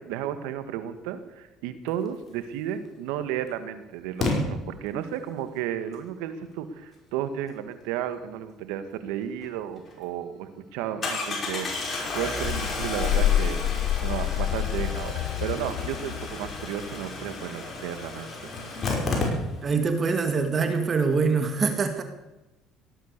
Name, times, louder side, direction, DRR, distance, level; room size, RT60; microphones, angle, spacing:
voice 1, 0.0-13.6 14.0-18.3, right 10 dB, 85° right, 10 dB, 1.7 m, -33 dB
Engine starting, 2.7-2.8 4.2-4.3 9.4-9.5 9.9-10.0 11.0-19.8 20.1-20.2 20.4-20.5, left 3 dB, 40° left, 5.6 m, -32 dB
sound 1, 12.4-16.9, left 12 dB, 75° left, 0.5 m, -27 dB
voice 2, 19.6-22.0, right 4 dB, 35° right, 7 dB, 2.0 m, -24 dB
17.5 x 12.0 x 6.7 m, 1.0 s
supercardioid pair, 95°, 0 cm